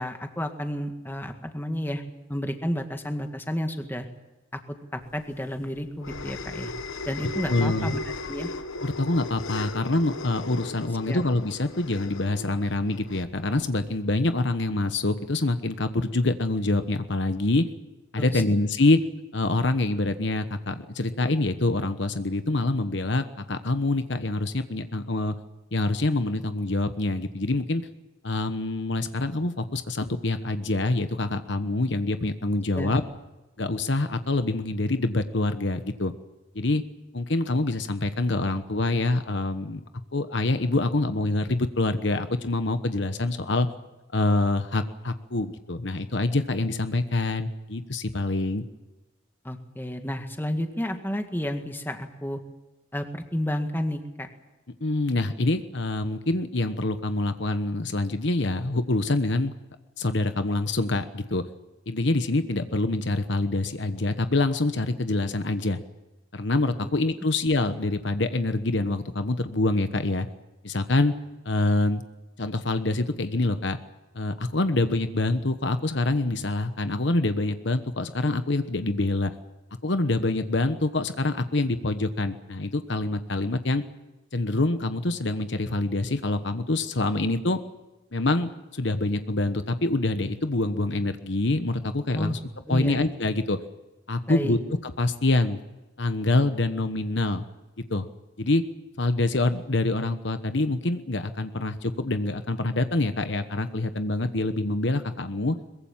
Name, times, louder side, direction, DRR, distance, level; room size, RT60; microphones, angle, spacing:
voice 1, 0.0-2.0 2.3-4.1 4.9-6.7 7.1-8.0 8.3-8.5 11.1-11.2 18.2-18.4 32.7-33.0 49.4-52.4 52.9-54.3 92.2-92.3 92.7-93.0 94.3-94.6, equal, 10° left, 5 dB, 1.9 m, -31 dB
sound 1, 5.2-14.0, left 2 dB, 85° left, 1.3 m, -36 dB
voice 2, 7.5-7.9 8.8-17.6 18.1-19.0 19.3-25.3 25.7-27.8 28.2-33.0 33.6-36.1 36.5-36.8 37.1-39.8 40.1-43.7 44.1-48.6 54.8-59.5 60.0-61.4 61.9-65.8 66.3-70.3 70.6-71.1 71.4-72.0 72.4-73.8 74.1-79.3 79.8-83.8 84.3-87.6 88.1-92.4 92.7-93.6 94.1-94.6 95.0-95.6 96.0-97.4 97.9-98.1 98.4-98.6 99.0-105.6, left 2 dB, 60° left, 9 dB, 1.2 m, -25 dB
22.5 x 22.0 x 7.3 m, 1.1 s
head